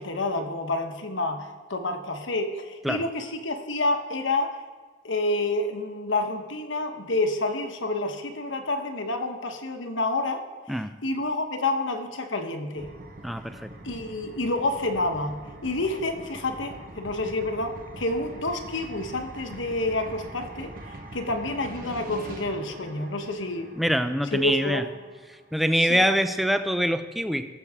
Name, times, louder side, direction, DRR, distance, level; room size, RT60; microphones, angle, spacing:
voice 1, 0.0-4.6 5.0-10.4 10.7-12.9 13.8-23.7 24.3-24.9 25.8-26.0, left 2 dB, 75° left, 5 dB, 1.2 m, -29 dB
sound 1, 12.7-25.5, right 1 dB, 45° right, 1.2 m, -43 dB
voice 2, 13.2-13.7 23.8-24.8 25.5-27.5, equal, ahead, 9 dB, 0.4 m, -24 dB
19.0 x 6.9 x 3.6 m, 1.5 s
head